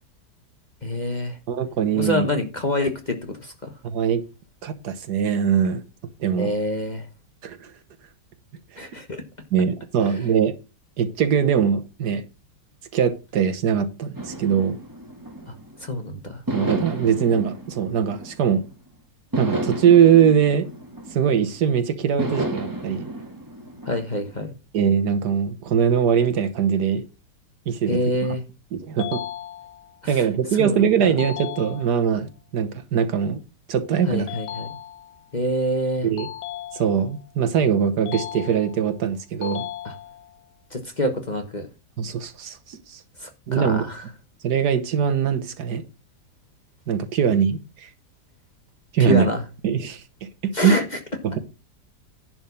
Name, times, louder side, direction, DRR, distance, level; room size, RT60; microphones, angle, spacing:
voice 1, 0.8-1.4 1.9-3.7 6.4-7.1 8.8-9.2 15.5-15.6 15.8-16.4 23.8-24.5 27.9-28.4 30.0-30.3 30.6-30.8 34.1-34.7 35.3-36.1 39.8-39.9 40.7-41.7 43.2-44.0 49.0-49.4 50.5-50.8, left 1 dB, 30° left, 5 dB, 1.2 m, -26 dB
voice 2, 1.5-2.3 3.8-4.2 4.6-5.8 6.2-6.5 7.4-7.7 9.5-10.5 11.0-12.2 12.9-14.8 16.5-18.6 19.4-20.7 21.1-23.1 24.7-27.0 27.7-28.0 28.7-29.2 30.1-33.4 33.7-34.3 36.0-36.3 36.7-39.7 42.0-43.0 43.5-43.8 44.4-45.8 46.9-47.9 48.9-49.3 49.6-50.8 51.2-51.4, right 7 dB, 70° right, 9 dB, 1.6 m, -21 dB
sound 1, 14.1-15.9 16.5-18.7 19.3-21.6 22.2-24.4, right 1 dB, 10° right, 1.6 m, -32 dB
sound 2, 29.0-30.0 31.2-32.2 34.3-35.3 36.2-37.2 38.1-39.0 39.4-40.4, left 12 dB, 75° left, 1.3 m, -36 dB
11.0 x 4.4 x 6.9 m, 0.30 s
omnidirectional pair, 1.8 m